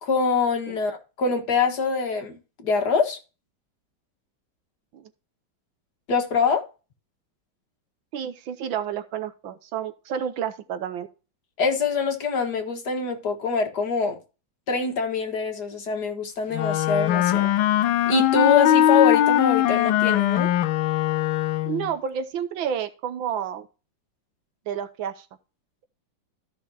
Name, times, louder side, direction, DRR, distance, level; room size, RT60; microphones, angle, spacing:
voice 1, 0.0-3.2 6.1-6.6 11.6-14.2 14.7-17.5 18.1-20.5, left 5 dB, 55° left, 2.1 m, -24 dB
voice 2, 8.1-11.1 21.6-23.7 24.7-25.3, right 8 dB, 80° right, 1.6 m, -30 dB
Wind instrument woodwind instrument, 16.5-21.9, left 12 dB, 90° left, 1.4 m, -21 dB
14.0 x 6.1 x 2.8 m
omnidirectional pair, 2.1 m